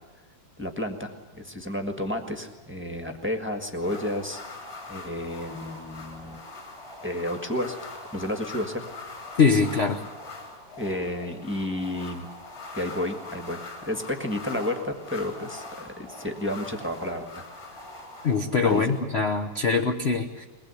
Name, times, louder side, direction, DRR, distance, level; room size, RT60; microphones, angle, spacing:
voice 1, 0.6-4.4 4.9-6.4 7.0-7.8 8.1-8.8 10.8-12.3 12.7-17.4 18.6-18.8, left 1 dB, 5° right, 4 dB, 1.3 m, -31 dB
sound 1, 3.8-19.0, left 2 dB, 25° left, 3.8 m, -42 dB
voice 2, 9.4-10.0 18.2-20.4, left 5 dB, 45° left, 5 dB, 0.8 m, -23 dB
22.0 x 20.0 x 8.3 m, 1.2 s
omnidirectional pair, 2.4 m